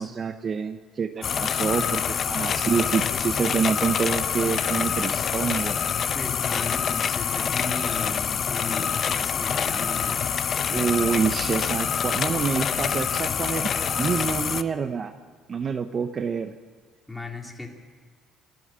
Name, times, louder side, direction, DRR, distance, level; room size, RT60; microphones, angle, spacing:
voice 1, 0.0-5.8 10.7-15.1 15.5-16.5, right 6 dB, 35° right, 9 dB, 0.8 m, -27 dB
sound 1, 1.2-14.6, left 8 dB, 45° left, 0.7 m, -26 dB
voice 2, 6.1-10.2 17.1-17.7, left 2 dB, 5° left, 1 dB, 2.7 m, -36 dB
27.0 x 12.0 x 8.8 m, 1.5 s
cardioid pair, 130°, 0 cm